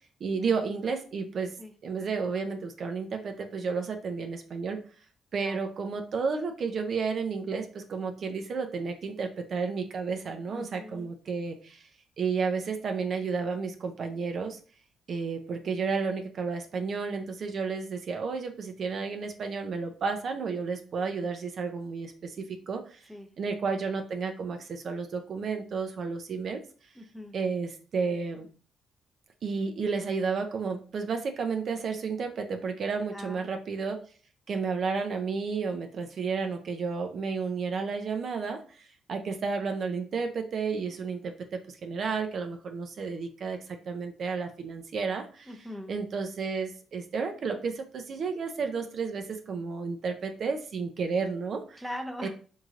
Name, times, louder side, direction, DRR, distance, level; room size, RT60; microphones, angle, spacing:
voice 1, 0.2-1.6 1.8-4.8 5.3-11.9 12.2-14.6 15.1-23.0 23.4-26.6 27.3-28.5 29.4-34.0 34.5-45.5 45.9-51.8 52.2-52.3, right 5 dB, 55° right, 5 dB, 0.4 m, -32 dB
voice 2, 10.5-11.1 23.1-23.3 27.0-27.4 33.1-33.5 45.5-45.9 51.8-52.3, left 1 dB, ahead, 2 dB, 0.5 m, -40 dB
3.1 x 2.6 x 2.4 m, 0.40 s
cardioid pair, 90°, 0 cm